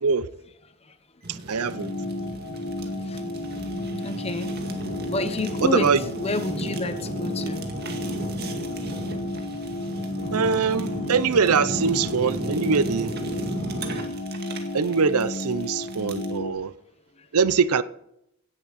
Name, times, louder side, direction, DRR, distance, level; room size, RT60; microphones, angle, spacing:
Fire, 1.2-16.4, right 1 dB, 45° right, 2.1 m, -35 dB
voice 1, 1.3-1.9 5.6-6.0 10.3-13.1 14.7-16.7 17.3-17.8, right 5 dB, 85° right, 0.7 m, -23 dB
sound 1, 1.6-16.5, left 1 dB, 85° left, 1.7 m, -33 dB
voice 2, 4.0-4.5 5.1-7.6 14.5-14.6, left 2 dB, 25° left, 0.9 m, -29 dB
17.0 x 11.0 x 4.2 m
head